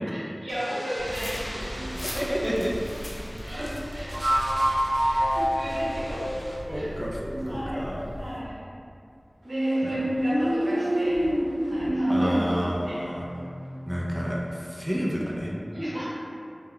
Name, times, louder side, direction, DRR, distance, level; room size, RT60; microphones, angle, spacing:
voice 1, 0.0-2.0 3.4-4.5 5.1-6.2 6.7-6.9 7.4-7.9 8.2-8.6 9.4-11.2 11.6-13.0 15.7-16.1, equal, 85° right, -10 dB, 0.8 m, -34 dB
sound 1, 0.5-6.6, equal, 40° right, 1.3 m, -43 dB
sound 2, 1.0-8.4, equal, 70° left, 0.4 m, -38 dB
sound 3, 1.8-1.9 4.1-7.5 9.5-14.3, equal, 70° right, 0.4 m, -27 dB
voice 2, 2.1-2.7 6.7-8.1 9.8-10.0 12.1-13.2 13.9-15.5, equal, 10° right, -4 dB, 0.4 m, -30 dB
3.4 x 2.1 x 2.3 m, 2.4 s
wide cardioid pair, 50°, 0 cm